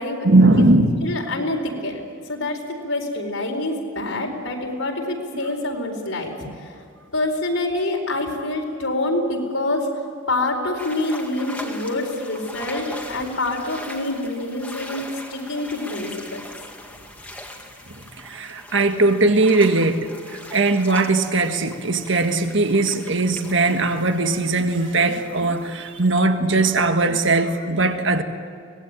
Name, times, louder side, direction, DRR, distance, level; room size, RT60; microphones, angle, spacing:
voice 1, 0.2-1.1 17.9-28.2, right 2 dB, 60° right, 7 dB, 1.7 m, -19 dB
voice 2, 1.0-2.0 2.3-6.7 7.1-9.9 10.3-15.0 15.3-16.5, left 2 dB, 75° left, 2 dB, 4.5 m, -26 dB
sound 1, 10.8-26.1, left 1 dB, 5° left, 2.0 m, -40 dB
24.5 x 19.5 x 9.1 m, 2.4 s
head